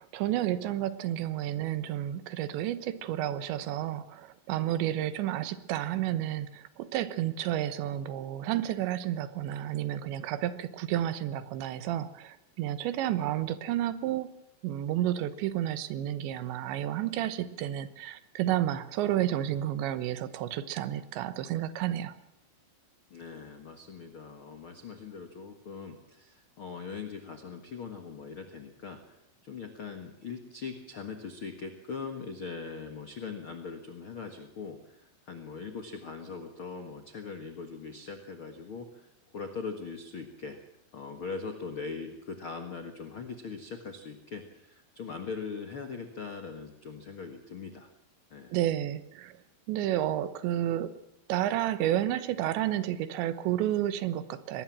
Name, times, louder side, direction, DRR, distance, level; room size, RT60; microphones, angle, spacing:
voice 1, 0.0-14.3 14.6-22.1 48.5-49.4 49.7-50.9 51.3-54.6, right 12 dB, 80° right, 13 dB, 3.3 m, -31 dB
voice 2, 23.1-29.2 29.4-40.6 40.9-47.9 48.3-48.6, left 5 dB, 75° left, 6 dB, 1.2 m, -41 dB
24.0 x 19.5 x 7.5 m, 0.80 s
omnidirectional pair, 5.1 m